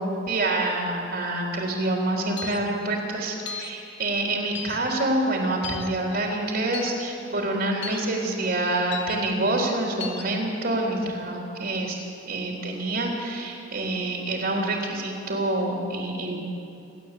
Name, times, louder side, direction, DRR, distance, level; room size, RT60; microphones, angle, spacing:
voice 1, 0.0-12.0 12.3-16.4, right 2 dB, 55° right, 0 dB, 3.6 m, -27 dB
sound 1, 2.4-2.6 3.5-3.7 4.5-4.8 5.6-5.9 6.7-6.9 7.8-8.0 8.9-9.2 10.0-10.2, left 6 dB, 65° left, 2.3 m, -35 dB
29.0 x 12.5 x 8.5 m, 2.7 s
head